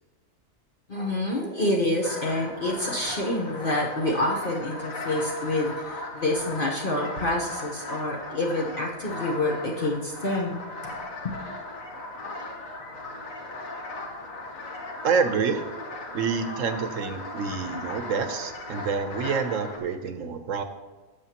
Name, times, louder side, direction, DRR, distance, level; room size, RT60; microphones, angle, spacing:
voice 1, 0.9-10.6 11.2-11.4, left 1 dB, 45° left, -3 dB, 1.1 m, -27 dB
sound 1, 2.0-19.8, left 2 dB, 80° left, 1.8 m, -37 dB
voice 2, 15.0-15.6 16.1-20.6, right 5 dB, 70° right, 8 dB, 1.2 m, -27 dB
16.5 x 6.9 x 2.9 m, 1.3 s
omnidirectional pair, 1.4 m